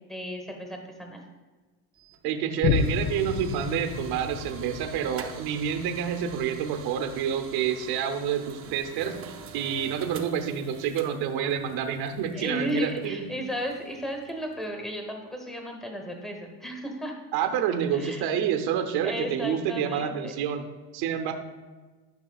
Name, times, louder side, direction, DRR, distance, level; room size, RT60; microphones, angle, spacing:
voice 1, 0.1-1.2 12.3-17.1 17.9-18.4 19.0-20.5, equal, ahead, 2 dB, 1.0 m, -34 dB
sound 1, 1.9-14.7, right 6 dB, 35° right, 0.6 m, -47 dB
voice 2, 2.2-13.2 17.3-20.6 20.9-21.3, right 8 dB, 70° right, 6 dB, 0.8 m, -28 dB
Boom, 2.6-9.5 10.1-10.2, left 6 dB, 55° left, 0.5 m, -33 dB
11.0 x 5.5 x 2.3 m, 1.3 s
cardioid pair, 130°, 41 cm